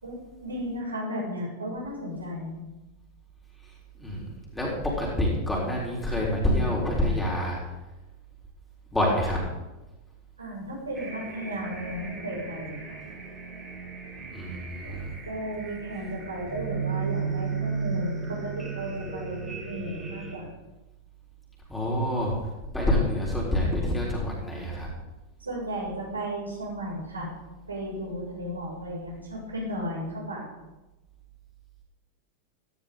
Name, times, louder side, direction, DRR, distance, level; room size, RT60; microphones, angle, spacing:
voice 1, 0.0-2.5 10.4-13.0 14.8-20.5 25.4-27.3 27.7-30.5, equal, 75° right, -3 dB, 6.0 m, -34 dB
voice 2, 4.5-7.6 8.9-9.4 14.3-15.2 21.7-22.4 22.7-24.9, left 1 dB, 5° left, -4 dB, 4.0 m, -27 dB
sound 1, 10.9-20.4, right 5 dB, 15° right, 4.5 m, -35 dB
15.5 x 13.5 x 3.8 m, 1.0 s
figure-of-eight pair, 90°, 0 cm